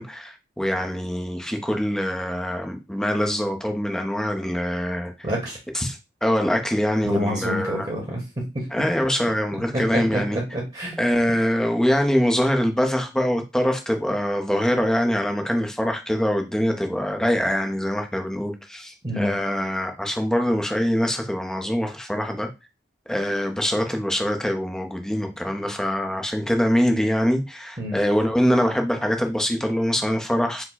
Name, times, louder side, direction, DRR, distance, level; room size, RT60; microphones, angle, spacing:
voice 1, 0.0-5.1 5.7-7.9 8.7-10.4 11.0-22.5 23.1-30.6, equal, 5° left, 0.6 m, -24 dB
voice 2, 5.2-5.6 7.0-8.2 8.5-8.7 9.9-11.0 19.0-19.4 27.8-28.0, equal, 30° right, 1.1 m, -27 dB
4.6 x 2.1 x 3.9 m
head